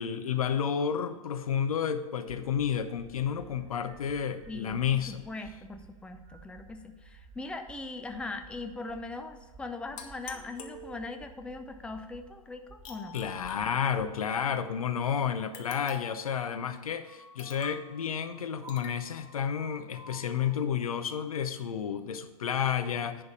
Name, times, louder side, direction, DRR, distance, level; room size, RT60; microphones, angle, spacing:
voice 1, 0.0-5.2 13.1-23.2, left 8 dB, 75° left, 9 dB, 0.7 m, -31 dB
sound 1, 2.3-14.1 14.6-20.6, right 3 dB, 15° right, 2.7 m, -54 dB
voice 2, 4.5-4.8 5.1-13.2, left 3 dB, 5° left, 5 dB, 0.6 m, -40 dB
sound 2, 10.0-11.4 12.8-14.3 15.5-16.3 17.4-17.9 18.7-19.0, left 5 dB, 45° left, 1.2 m, -45 dB
10.0 x 3.4 x 7.0 m, 1.4 s
hypercardioid pair, 100°, 18 cm